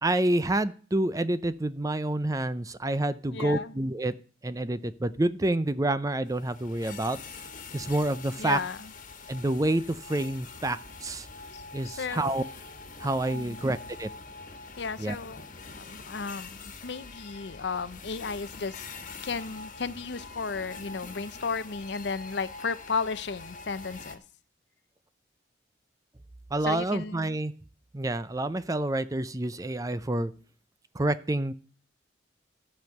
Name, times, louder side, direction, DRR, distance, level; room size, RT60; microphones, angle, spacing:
voice 1, 0.0-4.1 4.4-7.2 7.7-8.6 9.3-11.3 11.7-12.4 13.0-14.1 15.0-15.2 26.5-27.5 27.9-30.3 30.9-31.5, right 1 dB, 20° right, 14 dB, 0.5 m, -28 dB
voice 2, 3.3-3.7 8.4-8.9 11.5-12.4 13.3-13.6 14.8-15.4 15.8-18.8 19.2-24.2 26.6-27.4, left 4 dB, 65° left, 15 dB, 0.6 m, -34 dB
sound 1, 6.3-24.2, left 4 dB, 45° left, 1.5 m, -44 dB
13.5 x 5.3 x 7.9 m, 0.40 s
head